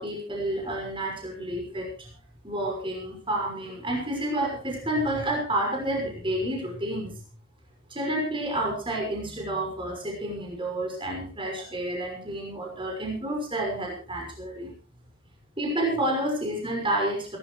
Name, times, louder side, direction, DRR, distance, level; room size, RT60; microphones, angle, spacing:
voice 1, 0.0-2.1 2.4-7.2 7.9-14.7 15.6-17.4, right 1 dB, 25° right, 1 dB, 5.9 m, -30 dB
27.5 x 13.0 x 3.2 m, 0.35 s
head